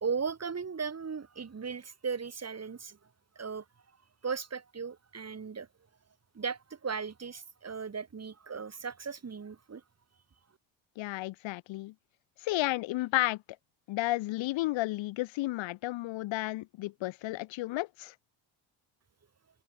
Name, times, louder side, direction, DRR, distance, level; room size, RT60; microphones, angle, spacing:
voice 1, 0.0-3.0 3.3-3.6 4.2-5.7 6.3-9.8, right 5 dB, 35° right, 3.3 m, -37 dB
voice 2, 11.0-11.9 12.4-13.4 13.9-18.1, left 18 dB, 75° left, 0.9 m, -32 dB
open air
cardioid pair, 80°, 46 cm